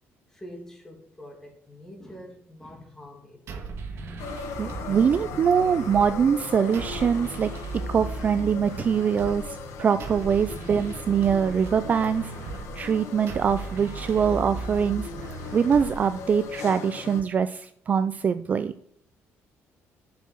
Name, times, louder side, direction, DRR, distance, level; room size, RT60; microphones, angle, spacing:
voice 1, 0.3-3.7 6.5-6.6, equal, 10° left, 1 dB, 2.3 m, -45 dB
sound 1, 3.5-16.5, right 4 dB, 55° right, 1.5 m, -37 dB
sound 2, 4.2-17.2, left 6 dB, 75° left, 1.4 m, -39 dB
voice 2, 4.6-12.3 12.7-18.7, right 7 dB, 30° right, 12 dB, 0.4 m, -24 dB
6.9 x 6.6 x 7.6 m, 0.66 s
cardioid pair, 155°, 5 cm